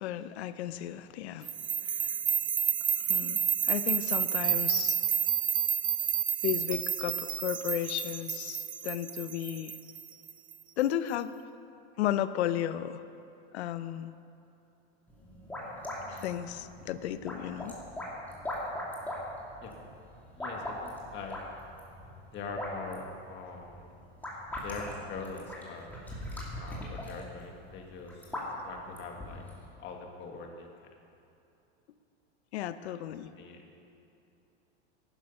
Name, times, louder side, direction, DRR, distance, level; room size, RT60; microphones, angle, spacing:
voice 1, 0.0-2.2 3.0-5.0 6.4-9.8 10.8-11.3 12.0-13.0 13.5-14.1 16.1-17.8 32.5-33.3, left 11 dB, 80° left, 13 dB, 0.8 m, -34 dB
sound 1, 1.5-10.5, right 8 dB, 15° right, 0.4 m, -30 dB
sound 2, 15.1-29.6, left 1 dB, 5° left, 2.5 m, -41 dB
voice 2, 20.3-21.4 22.3-24.0 24.6-25.9 26.6-28.3 28.6-29.4 29.8-30.7 32.8-33.6, left 4 dB, 35° left, 2 dB, 2.0 m, -43 dB
14.5 x 11.5 x 5.6 m, 2.8 s
supercardioid pair, 145°, 33 cm